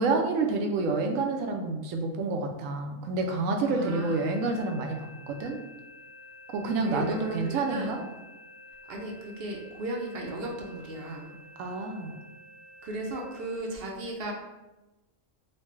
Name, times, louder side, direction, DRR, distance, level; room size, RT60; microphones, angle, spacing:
voice 1, 0.0-5.6 6.5-8.0 11.6-12.1, right 3 dB, 85° right, 3 dB, 1.0 m, -28 dB
voice 2, 3.7-4.3 6.8-8.0 8.9-11.3 12.8-14.3, right 1 dB, 60° right, 0 dB, 0.7 m, -36 dB
sound 1, 3.9-13.6, left 2 dB, 60° left, 0.6 m, -50 dB
4.2 x 2.1 x 3.1 m, 1.1 s
omnidirectional pair, 1.3 m